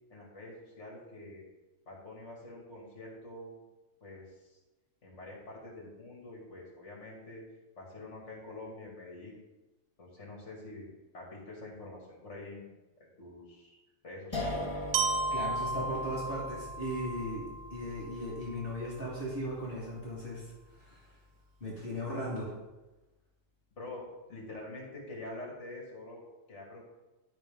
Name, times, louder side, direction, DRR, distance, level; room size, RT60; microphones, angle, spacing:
voice 1, 0.1-1.4 1.9-3.5 4.0-4.5 5.0-7.4 7.8-9.4 10.0-10.9 11.1-12.7 13.0-13.8 14.0-14.6 23.8-24.0 24.3-26.2 26.5-26.8, left 2 dB, 60° left, -2 dB, 2.7 m, -46 dB
sound 1, 14.3-21.3, left 1 dB, 20° left, 1.6 m, -42 dB
Glockenspiel, 14.9-18.9, right 3 dB, 75° right, 1.0 m, -35 dB
voice 2, 15.3-17.4 17.7-20.5 20.8-21.1 21.6-22.5, equal, 40° left, -6 dB, 2.3 m, -37 dB
12.0 x 5.3 x 3.7 m, 1.1 s
omnidirectional pair, 1.4 m